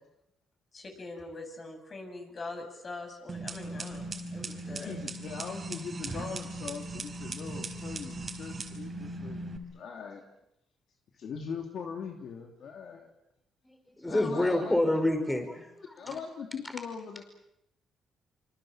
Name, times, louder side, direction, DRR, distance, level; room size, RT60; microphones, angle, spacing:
voice 1, 0.7-4.0 4.3-4.9, left 2 dB, 40° left, 5 dB, 7.6 m, -42 dB
sound 1, 3.3-9.6, right 2 dB, 35° right, 4.6 m, -38 dB
voice 2, 4.7-9.4 9.7-10.2 11.2-13.1 14.0-14.7 16.0-17.2, left 6 dB, 65° left, 3 dB, 2.9 m, -40 dB
voice 3, 14.0-15.9, left 1 dB, 10° left, 6 dB, 5.2 m, -27 dB
26.5 x 26.0 x 7.5 m, 0.82 s
cardioid pair, 90°, 0 cm